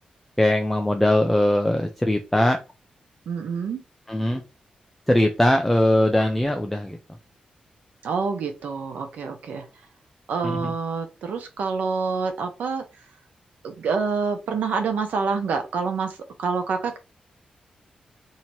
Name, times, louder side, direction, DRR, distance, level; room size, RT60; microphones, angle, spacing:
voice 1, 0.4-2.6 4.1-4.4 5.1-7.0 10.4-10.7, left 1 dB, 5° left, 4 dB, 0.3 m, -21 dB
voice 2, 3.3-3.8 8.0-9.7 10.3-12.8 13.6-17.0, right 5 dB, 85° right, 6 dB, 0.8 m, -27 dB
2.8 x 2.8 x 4.3 m, 0.29 s
wide cardioid pair, 170°, 3 cm